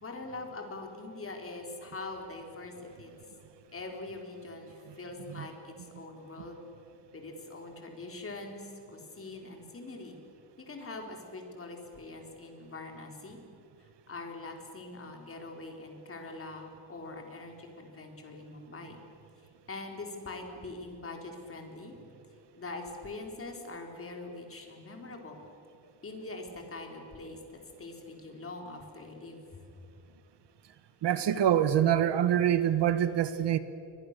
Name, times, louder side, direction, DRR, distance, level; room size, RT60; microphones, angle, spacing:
voice 1, 0.0-3.1 3.7-6.6 7.1-10.2 10.6-13.4 13.8-19.0 19.7-21.9 22.6-25.4 26.0-27.4 27.8-29.7, left 2 dB, 25° left, 2 dB, 3.9 m, -43 dB
voice 2, 31.0-33.6, right 10 dB, 60° right, 12 dB, 1.2 m, -25 dB
30.0 x 23.5 x 6.7 m, 2.8 s
cardioid pair, 165°, 48 cm